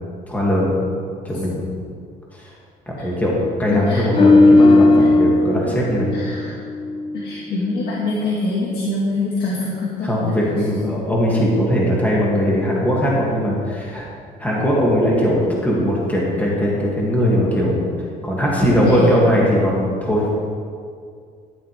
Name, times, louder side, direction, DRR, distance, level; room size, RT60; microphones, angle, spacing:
voice 1, 0.3-0.7 1.2-1.7 2.9-6.1 10.0-14.1 14.4-17.9 18.2-20.3, equal, 10° left, -5 dB, 2.4 m, -19 dB
voice 2, 3.7-4.1 5.0-5.1 6.1-6.5 7.1-10.4 10.8-10.9 18.8-19.1, left 2 dB, 70° left, -5 dB, 1.8 m, -24 dB
sound 1, 4.1-7.4 7.7-7.9, left 2 dB, 30° left, 0.7 m, -15 dB
13.0 x 7.8 x 3.5 m, 2.2 s
cardioid pair, 110°, 17 cm